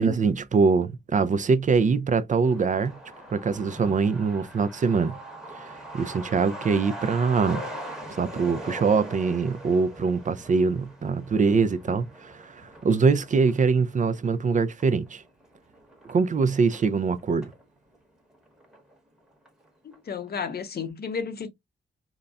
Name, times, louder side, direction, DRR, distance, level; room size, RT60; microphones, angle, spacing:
voice 1, 0.0-3.0 3.3-5.2 5.6-7.6 8.1-15.2 16.1-17.5, right 5 dB, 40° right, 0.4 m, -23 dB
Truck, 2.4-17.6 17.9-18.0 18.3-19.2 19.5-19.6 19.9-20.3, right 1 dB, 5° right, 1.0 m, -42 dB
voice 2, 19.8-21.5, left 5 dB, 55° left, 0.7 m, -32 dB
3.8 x 2.1 x 2.2 m
wide cardioid pair, 115°, 20 cm